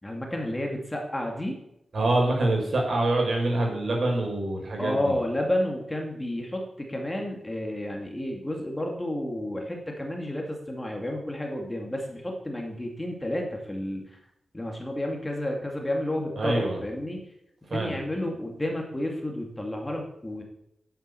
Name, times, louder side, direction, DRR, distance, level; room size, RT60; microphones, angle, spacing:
voice 1, 0.0-1.6 4.8-14.2 14.5-17.3 17.7-20.4, left 1 dB, 15° left, 1 dB, 2.4 m, -31 dB
voice 2, 1.9-5.1 16.4-16.8 17.7-18.0, right 2 dB, 55° right, -1 dB, 6.0 m, -25 dB
11.0 x 9.4 x 8.4 m, 0.80 s
wide cardioid pair, 130°, 0 cm